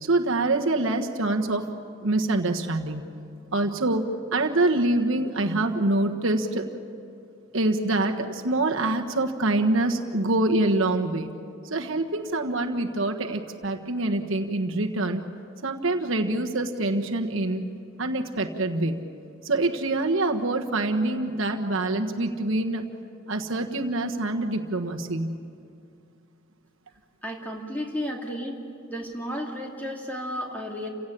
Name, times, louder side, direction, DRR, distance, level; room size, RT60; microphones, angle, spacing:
voice 1, 0.0-1.6 2.0-3.0 3.5-6.6 7.5-11.3 11.7-15.2 15.6-17.6 18.0-19.0 19.4-22.8 23.3-25.4, right 2 dB, 70° right, 3 dB, 1.4 m, -25 dB
voice 2, 27.2-28.6 28.9-30.9, equal, 10° left, -1 dB, 2.7 m, -33 dB
29.0 x 17.0 x 8.7 m, 2.4 s
head